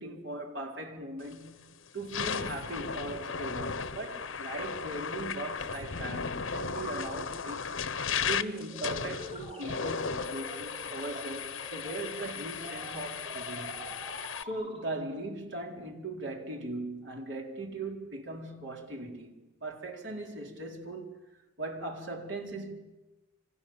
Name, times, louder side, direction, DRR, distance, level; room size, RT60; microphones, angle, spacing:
voice 1, 0.0-1.7 1.9-7.8 8.3-13.8 14.4-21.2 21.6-22.7, right 2 dB, 65° right, 4.3 m, -39 dB
sound 1, 1.3-1.5 2.0-14.4, left 6 dB, 80° left, 1.1 m, -36 dB
sound 2, 8.7-15.2, equal, 30° right, 4.6 m, -45 dB
29.0 x 26.5 x 7.4 m
head